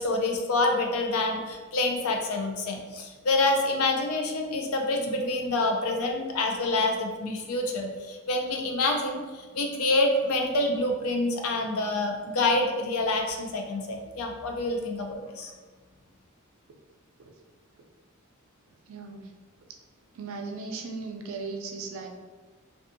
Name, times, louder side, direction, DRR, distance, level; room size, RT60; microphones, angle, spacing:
voice 1, 0.0-15.5, left 2 dB, 75° left, 3 dB, 0.4 m, -27 dB
voice 2, 18.9-19.3 20.1-22.1, right 4 dB, 65° right, 3 dB, 0.4 m, -37 dB
2.6 x 2.3 x 2.6 m, 1.4 s
head